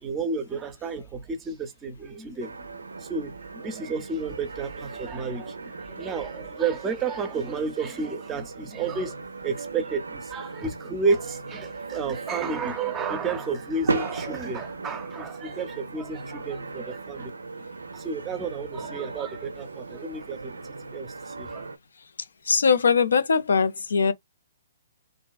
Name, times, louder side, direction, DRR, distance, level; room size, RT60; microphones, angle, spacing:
voice 1, 0.0-2.7 3.0-9.2 9.4-17.3 17.9-20.6 20.9-21.7, right 4 dB, 20° right, 0.6 m, -31 dB
sound 1, 2.4-21.8, right 3 dB, 90° right, 0.4 m, -37 dB
voice 2, 22.5-24.1, left 5 dB, 80° left, 0.4 m, -21 dB
2.5 x 2.2 x 2.3 m
hypercardioid pair, 135°, 0 cm